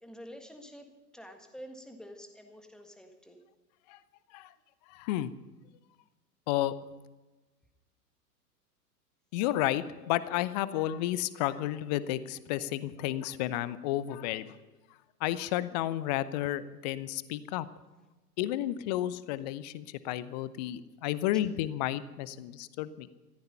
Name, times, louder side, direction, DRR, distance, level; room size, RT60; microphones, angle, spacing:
voice 1, 0.0-0.9 1.1-3.4, equal, ahead, 5 dB, 1.6 m, -48 dB
voice 2, 4.9-5.3 6.5-6.7 9.3-14.5 15.2-17.7 18.4-23.1, left 14 dB, 30° left, 17 dB, 0.6 m, -32 dB
14.5 x 14.0 x 5.6 m, 1.2 s
figure-of-eight pair, 100°, 47 cm